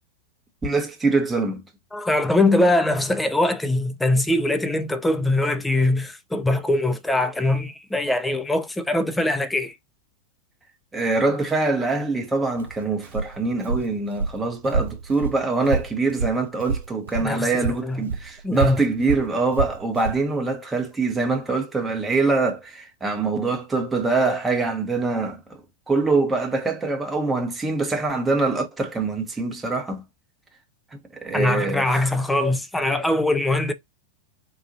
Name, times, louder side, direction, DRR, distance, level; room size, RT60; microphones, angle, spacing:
voice 1, 0.6-1.6 10.9-25.6 25.9-30.0 31.1-31.9, right 3 dB, 10° right, 1.0 m, -24 dB
voice 2, 1.9-9.7 17.2-18.1 18.4-18.8 31.3-33.7, left 2 dB, 5° left, 0.5 m, -22 dB
Walk footsteps, 12.5-17.3 17.6-20.2, right 5 dB, 65° right, 0.5 m, -28 dB
4.0 x 2.6 x 2.6 m
figure-of-eight pair, 90°, 0 cm